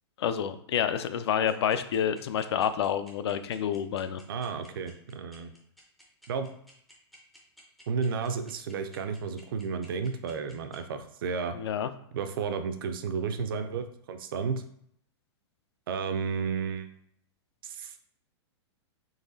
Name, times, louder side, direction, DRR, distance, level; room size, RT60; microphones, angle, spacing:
voice 1, 0.2-4.2 11.5-11.9, left 8 dB, 70° left, 12 dB, 0.4 m, -28 dB
sound 1, 1.5-10.8, equal, ahead, 0.4 m, -55 dB
voice 2, 4.3-5.5 6.3-6.5 7.9-11.6 12.1-14.6 15.9-16.9 17.6-17.9, right 5 dB, 55° right, 8 dB, 0.5 m, -32 dB
4.0 x 3.0 x 3.9 m, 0.67 s
supercardioid pair, 175°, 14 cm